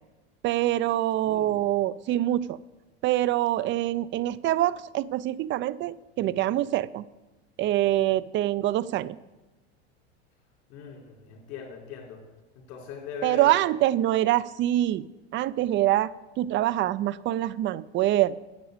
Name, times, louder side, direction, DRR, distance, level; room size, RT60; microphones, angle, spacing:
voice 1, 0.4-2.6 3.0-7.0 7.6-9.2 13.2-15.0 15.3-18.4, right 14 dB, 35° right, 18 dB, 0.5 m, -25 dB
voice 2, 1.2-1.6 10.7-12.2 12.7-13.5, left 6 dB, 55° left, 1 dB, 4.0 m, -39 dB
10.5 x 8.4 x 8.0 m, 1.1 s
supercardioid pair, 110°, 33 cm